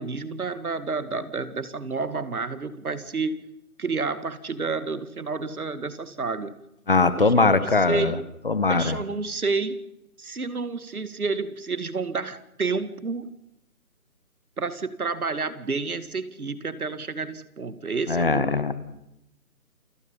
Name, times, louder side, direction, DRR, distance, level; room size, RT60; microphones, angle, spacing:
voice 1, 0.0-3.4 3.8-6.5 7.2-8.2 8.7-9.8 10.2-13.3 14.6-18.6, right 4 dB, 80° right, 13 dB, 2.4 m, -30 dB
voice 2, 6.9-8.2 8.4-9.0 18.1-18.7, left 3 dB, 40° left, 14 dB, 1.5 m, -21 dB
29.0 x 17.0 x 5.5 m, 0.84 s
hypercardioid pair, 175°, 43 cm